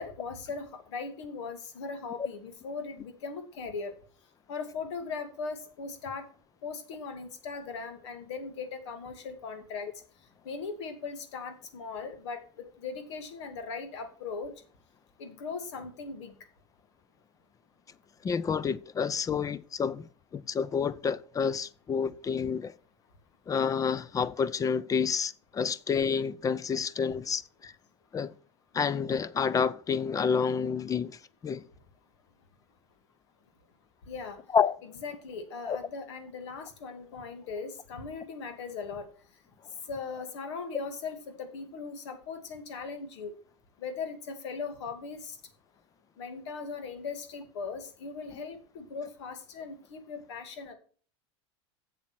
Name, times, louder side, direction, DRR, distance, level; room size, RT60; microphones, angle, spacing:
voice 1, 0.0-3.9 4.5-6.3 6.6-9.9 10.4-14.5 15.2-16.3 34.1-34.4 35.0-39.1 39.9-43.3 43.8-45.4 46.2-50.7, left 4 dB, 80° left, 2.2 m, -39 dB
voice 2, 18.2-22.7 23.5-27.7 28.1-28.3 28.7-31.6 34.5-34.8 35.6-35.8, left 6 dB, 25° left, 0.5 m, -29 dB
7.4 x 7.3 x 6.0 m
hypercardioid pair, 105°, 15 cm